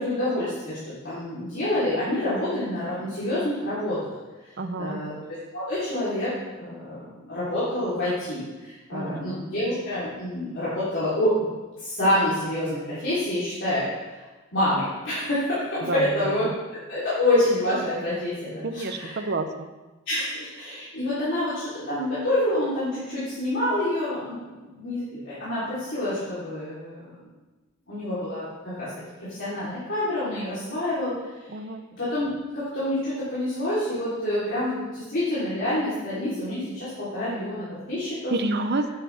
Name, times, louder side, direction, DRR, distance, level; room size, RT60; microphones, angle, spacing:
voice 1, 0.0-4.0 4.8-5.1 5.5-6.3 6.6-11.4 11.8-13.9 14.5-19.3 20.1-27.0 27.9-28.5 28.7-28.9 29.3-31.1 32.0-32.3 32.5-38.3, left 1 dB, 60° left, -12 dB, 3.8 m, -27 dB
voice 2, 4.6-5.0 8.9-9.5 15.8-16.1 18.6-19.7 31.5-31.8 38.3-38.9, right 2 dB, 55° right, 8 dB, 0.8 m, -29 dB
11.5 x 10.5 x 3.6 m, 1.2 s
head